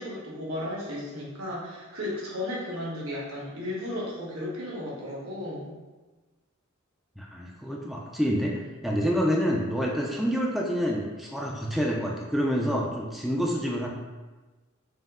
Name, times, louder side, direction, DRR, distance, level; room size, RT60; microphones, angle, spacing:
voice 1, 0.0-5.7, left 1 dB, 80° right, -6 dB, 1.3 m, -34 dB
voice 2, 7.2-13.9, equal, ahead, -2 dB, 0.4 m, -27 dB
5.1 x 2.1 x 3.6 m, 1.2 s
head